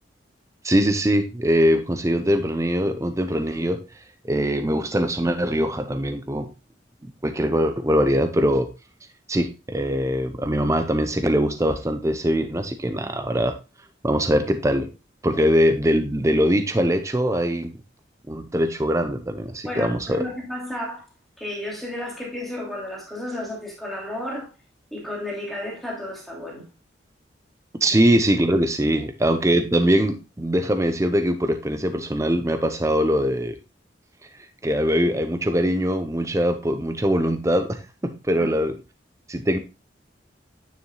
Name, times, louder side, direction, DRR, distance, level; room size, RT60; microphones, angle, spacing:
voice 1, 0.6-3.8 4.2-6.5 7.2-8.7 9.3-13.5 14.0-14.9 15.2-17.7 18.3-20.2 27.8-33.5 34.6-38.7 39.3-39.6, equal, 15° right, 0.7 m, -22 dB
voice 2, 19.6-21.0 21.4-24.5 24.9-26.7 29.0-29.1 38.4-38.5, left 1 dB, ahead, 2.6 m, -32 dB
9.5 x 7.0 x 2.3 m
head